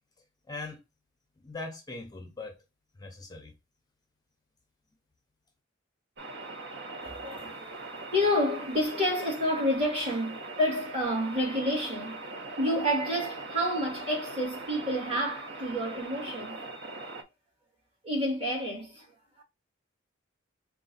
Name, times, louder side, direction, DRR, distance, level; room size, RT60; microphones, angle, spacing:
voice 1, 0.5-0.8 1.4-2.6 2.9-3.5, left 3 dB, 20° left, 0.5 m, -40 dB
sound 1, 6.2-17.2, right 2 dB, 60° right, 0.7 m, -41 dB
voice 2, 7.0-12.2 12.6-16.6 18.0-19.4, equal, 30° right, 1.9 m, -29 dB
3.8 x 2.4 x 3.9 m
head